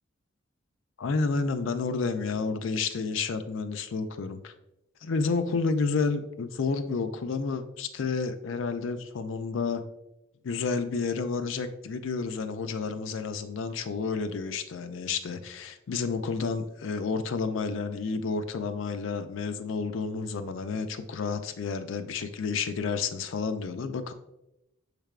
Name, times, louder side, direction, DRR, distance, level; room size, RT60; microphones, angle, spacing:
voice 1, 1.0-4.5 5.0-9.8 10.4-24.1, left 4 dB, 75° left, 9 dB, 0.4 m, -30 dB
6.5 x 3.3 x 2.4 m, 0.88 s
head